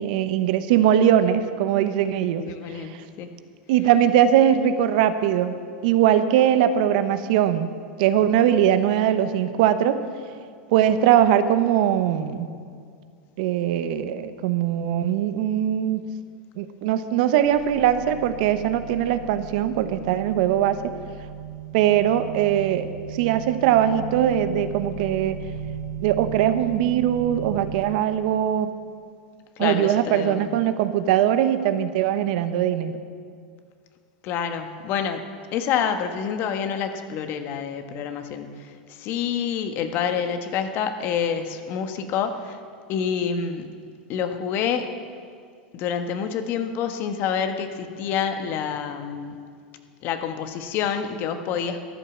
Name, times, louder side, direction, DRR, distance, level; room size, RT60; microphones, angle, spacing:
voice 1, 0.0-2.4 2.7-3.0 3.7-5.5 5.8-7.7 8.0-10.0 10.7-12.5 13.4-16.0 16.6-20.9 21.7-25.4 26.0-28.7 29.6-33.0, right 10 dB, 65° right, 11 dB, 1.0 m, -21 dB
voice 2, 2.5-3.3 29.6-30.5 34.2-35.2 35.5-42.6 42.9-43.8 44.1-44.9 45.7-49.4 50.0-51.8, left 7 dB, 50° left, 7 dB, 1.4 m, -27 dB
sound 1, 17.4-27.8, right 8 dB, 80° left, 2.3 m, -36 dB
14.0 x 11.0 x 7.2 m, 2.2 s
hypercardioid pair, 100°, 5 cm